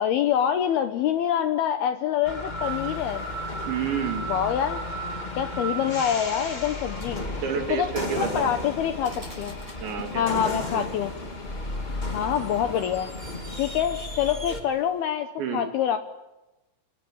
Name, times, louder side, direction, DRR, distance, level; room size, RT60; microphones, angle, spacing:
voice 1, 0.0-3.3 4.3-4.8 5.4-7.2 7.7-7.9 8.2-9.6 10.1-11.1 12.1-13.1 13.6-16.0, left 9 dB, 75° left, 8 dB, 2.4 m, -26 dB
sound 1, 2.2-14.6, left 1 dB, 55° left, 0.4 m, -34 dB
sound 2, 2.6-15.0, left 3 dB, 30° left, 1.2 m, -44 dB
voice 2, 3.7-4.3 7.4-8.5 9.8-10.9 15.4-15.7, right 7 dB, 65° right, 4 dB, 5.0 m, -30 dB
sound 3, 9.0-10.5, equal, 5° right, 6.4 m, -48 dB
27.5 x 20.5 x 9.6 m, 1.0 s
omnidirectional pair, 5.6 m